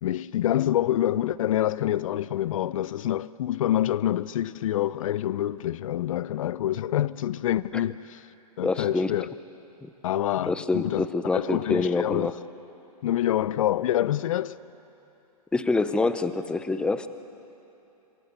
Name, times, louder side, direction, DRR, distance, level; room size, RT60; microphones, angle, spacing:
voice 1, 0.0-8.2 8.6-9.3 10.0-11.1 11.3-12.3 13.0-14.6, left 12 dB, 55° left, 0.6 m, -26 dB
voice 2, 8.6-9.1 9.8-9.9 10.5-12.3 15.5-17.1, left 3 dB, 5° left, 0.7 m, -26 dB
26.5 x 25.5 x 8.2 m
hypercardioid pair, 135°, 20 cm